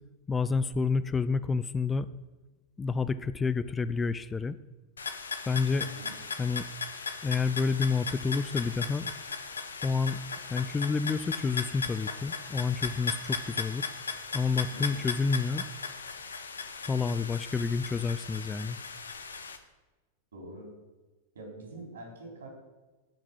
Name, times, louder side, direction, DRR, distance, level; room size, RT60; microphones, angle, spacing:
voice 1, 0.3-2.1 2.8-4.6 5.5-5.9 6.4-6.7 7.2-9.1 9.8-10.2 10.5-13.9 14.3-15.6 16.8-18.8, left 4 dB, 15° left, 15 dB, 0.4 m, -29 dB
sound 1, 5.0-19.6, left 5 dB, 70° left, 0.9 m, -37 dB
voice 2, 5.8-6.2 14.7-15.1 20.3-20.7 21.3-22.5, right 2 dB, 65° right, -1 dB, 4.0 m, -45 dB
10.5 x 5.9 x 7.9 m, 1.2 s
figure-of-eight pair, 90°, 0 cm